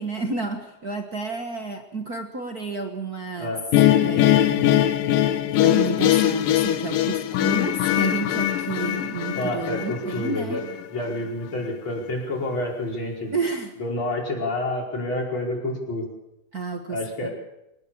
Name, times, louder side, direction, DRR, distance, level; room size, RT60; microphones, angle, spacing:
voice 1, 0.0-3.6 4.0-4.9 5.6-10.6 13.3-13.7 16.5-17.3, right 4 dB, 50° right, 4 dB, 1.1 m, -31 dB
sound 1, 3.7-10.8, left 12 dB, 70° left, 2.6 m, -21 dB
voice 2, 9.3-10.6 10.9-13.3 13.8-16.1 16.9-17.3, left 1 dB, 30° left, -1 dB, 5.7 m, -28 dB
24.5 x 19.0 x 7.2 m, 0.87 s
omnidirectional pair, 4.3 m